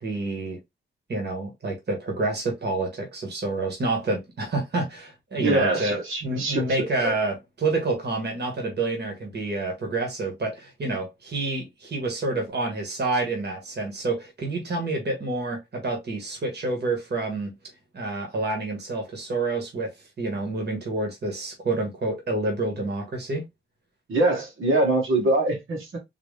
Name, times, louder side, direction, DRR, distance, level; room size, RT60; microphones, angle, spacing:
voice 1, 0.0-0.6 1.1-17.5 17.9-19.9 20.2-23.4, right 2 dB, 55° right, 1.4 m, -28 dB
voice 2, 5.4-7.1 24.1-26.0, right 2 dB, 90° right, 1.7 m, -24 dB
3.9 x 3.0 x 3.3 m
wide cardioid pair, 125°, 20 cm